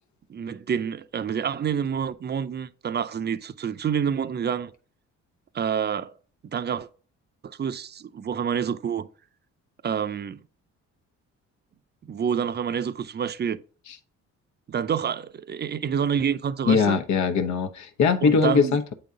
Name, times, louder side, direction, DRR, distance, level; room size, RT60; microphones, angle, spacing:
voice 1, 0.3-4.7 5.5-6.1 6.4-6.9 7.4-9.1 9.8-10.4 12.0-13.6 14.7-17.0 18.2-18.8, right 7 dB, 35° right, 0.5 m, -28 dB
voice 2, 16.7-18.9, left 5 dB, 70° left, 1.0 m, -21 dB
8.4 x 3.9 x 3.8 m
cardioid pair, 90°, 30 cm